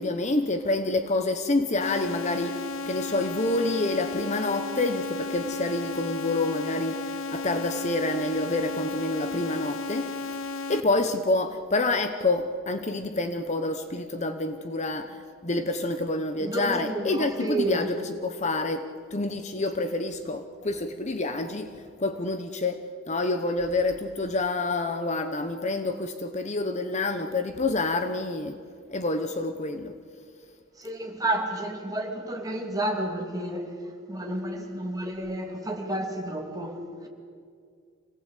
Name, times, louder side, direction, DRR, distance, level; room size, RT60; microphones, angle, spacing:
voice 1, 0.0-10.1 10.7-21.7 22.0-22.8 23.1-28.6 28.9-29.9, left 2 dB, 35° left, 1.0 m, -28 dB
sound 1, 1.8-10.8, left 3 dB, 80° left, 0.9 m, -34 dB
voice 2, 16.4-17.9 30.8-33.7 34.1-37.1, right 1 dB, 20° right, 2.8 m, -31 dB
25.5 x 18.0 x 8.4 m
head